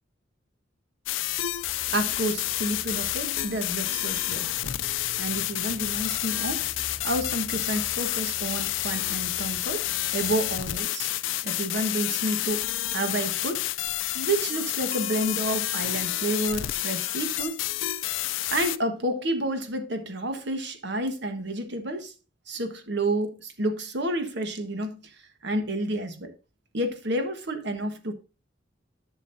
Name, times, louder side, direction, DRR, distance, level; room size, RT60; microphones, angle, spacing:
sound 1, 1.1-18.8, left 15 dB, 80° left, 0.4 m, -29 dB
sound 2, 1.2-10.7, equal, 25° left, 2.6 m, -47 dB
voice 1, 1.9-4.7 5.0-6.7 7.0-11.1 11.4-12.7 12.9-13.7 14.1-17.6 18.5-22.1 22.5-25.0 25.4-26.3 26.7-28.1, right 1 dB, 60° right, 1.3 m, -30 dB
11.5 x 6.2 x 2.6 m
head